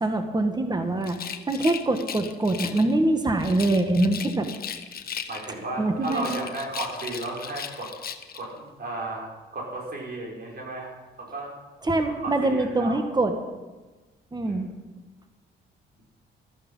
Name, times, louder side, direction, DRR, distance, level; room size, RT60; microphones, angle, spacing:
voice 1, 0.0-4.5 5.8-6.4 11.8-13.3 14.3-14.7, right 2 dB, 20° right, 6 dB, 1.5 m, -24 dB
Rattle, 1.0-2.9 3.4-5.6 6.0-8.5, left 7 dB, 50° left, 1.1 m, -37 dB
voice 2, 5.3-7.9 8.3-11.5 12.0-13.0 14.4-14.7, right 2 dB, 50° right, -1 dB, 5.4 m, -34 dB
14.0 x 13.5 x 5.6 m, 1.2 s
cardioid pair, 90°, 20 cm